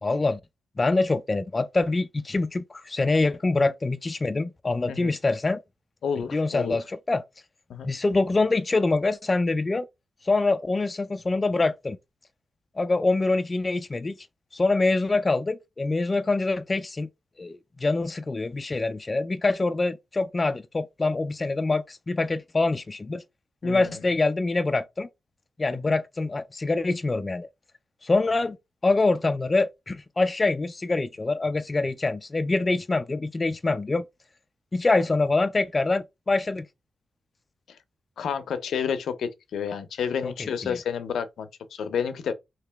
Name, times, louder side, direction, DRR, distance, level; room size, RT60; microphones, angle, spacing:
voice 1, 0.0-0.4 0.8-5.6 6.3-7.2 7.8-9.9 10.2-12.0 12.8-14.2 14.5-17.1 17.4-23.2 23.6-25.1 25.6-27.5 28.0-28.6 28.8-34.0 34.7-36.6 40.2-40.8, left 3 dB, 30° left, 0.3 m, -25 dB
voice 2, 6.0-6.8 7.7-7.9 23.6-24.0 25.9-26.0 38.2-42.3, left 7 dB, 80° left, 0.6 m, -30 dB
2.9 x 2.8 x 3.4 m
cardioid pair, 95°, 0 cm